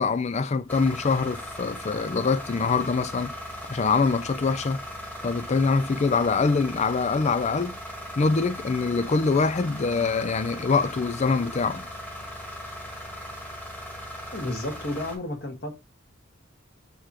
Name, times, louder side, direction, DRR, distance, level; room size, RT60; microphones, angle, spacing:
voice 1, 0.0-3.3 3.7-4.8 5.2-7.8 8.2-11.8, left 4 dB, 35° left, 0.4 m, -24 dB
sound 1, 0.7-15.2, equal, 10° left, 1.4 m, -38 dB
voice 2, 14.3-15.7, left 1 dB, 55° left, 1.8 m, -32 dB
6.9 x 3.0 x 4.8 m
head